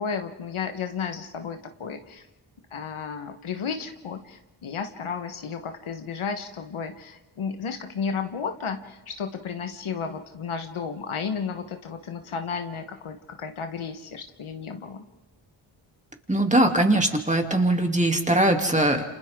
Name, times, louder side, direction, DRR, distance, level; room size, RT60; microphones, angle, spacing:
voice 1, 0.0-2.2 2.7-15.0, left 6 dB, 80° left, 6 dB, 1.6 m, -33 dB
voice 2, 16.3-19.0, right 1 dB, 15° right, 3 dB, 3.0 m, -21 dB
29.0 x 26.5 x 3.8 m, 1.0 s
cardioid pair, 45°, 50 cm